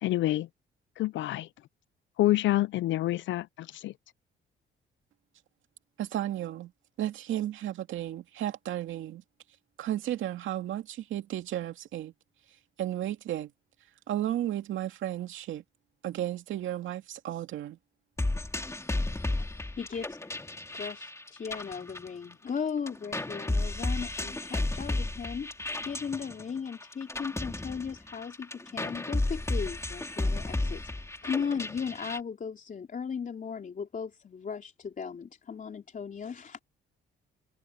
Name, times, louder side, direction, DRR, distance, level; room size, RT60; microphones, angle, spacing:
voice 1, 0.0-0.5 1.0-1.5 2.2-3.9, left 15 dB, 70° left, 0.4 m, -27 dB
voice 2, 6.0-6.7 7.0-9.2 9.8-12.1 12.8-13.5 14.1-15.6 16.0-17.8, right 12 dB, 75° right, 2.2 m, -33 dB
sound 1, 18.2-22.6 22.9-32.2, left 2 dB, 15° left, 3.6 m, -33 dB
voice 3, 19.2-20.2 20.7-36.6, left 6 dB, 45° left, 4.0 m, -37 dB
cardioid pair, 90°, 20 cm